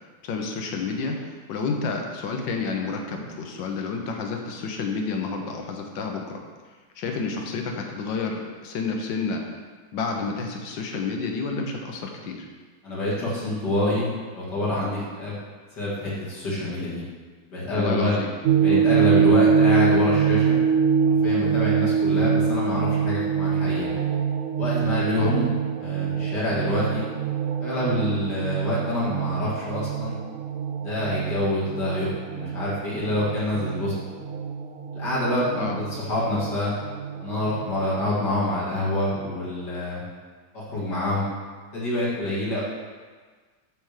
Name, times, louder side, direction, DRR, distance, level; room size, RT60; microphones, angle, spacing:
voice 1, 0.2-6.4 7.0-9.4 9.9-12.4 17.8-18.3 18.7-18.9 19.2-19.3 25.2-25.3 35.5-35.8, left 4 dB, 80° left, 2 dB, 1.6 m, -30 dB
voice 2, 12.8-15.4 15.7-17.0 17.5-18.1 18.6-20.6 21.2-23.9 24.6-25.5 25.8-27.1 27.6-30.1 30.8-33.9 34.9-36.7 37.2-40.0 40.5-41.2 41.7-42.6, left 1 dB, 60° left, -7 dB, 2.6 m, -26 dB
sound 1, 18.4-37.9, right 6 dB, 75° right, 0.7 m, -24 dB
7.5 x 3.5 x 6.5 m, 1.5 s
omnidirectional pair, 2.0 m